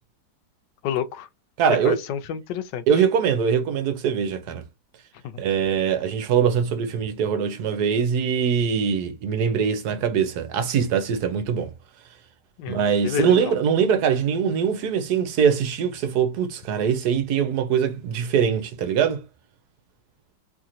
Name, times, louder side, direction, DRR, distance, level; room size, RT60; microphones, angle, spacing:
voice 1, 0.8-1.3 1.8-2.8 12.6-13.5, left 9 dB, 80° left, 1.2 m, -29 dB
voice 2, 1.6-2.0 2.9-4.6 5.4-11.7 12.7-19.2, right 7 dB, 70° right, 1.1 m, -22 dB
3.2 x 2.8 x 2.5 m
omnidirectional pair, 1.9 m